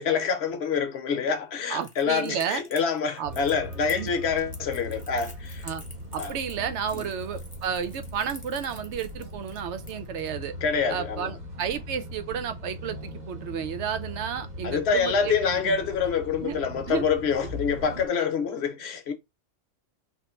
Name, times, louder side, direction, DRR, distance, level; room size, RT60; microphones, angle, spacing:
voice 1, 0.0-5.7 6.2-6.3 6.9-7.1 10.6-11.3 14.6-19.1, left 6 dB, 65° left, 1.0 m, -26 dB
voice 2, 1.7-2.6 3.2-3.3 4.0-4.1 5.6-5.8 6.1-10.5 10.9-15.8 16.4-16.6 16.9-17.1, right 8 dB, 75° right, 0.8 m, -32 dB
Crackle, 1.8-10.3, left 1 dB, 10° left, 0.8 m, -48 dB
sound 1, 3.2-18.1, left 1 dB, 40° right, 0.9 m, -40 dB
3.0 x 2.4 x 4.3 m
omnidirectional pair, 1.2 m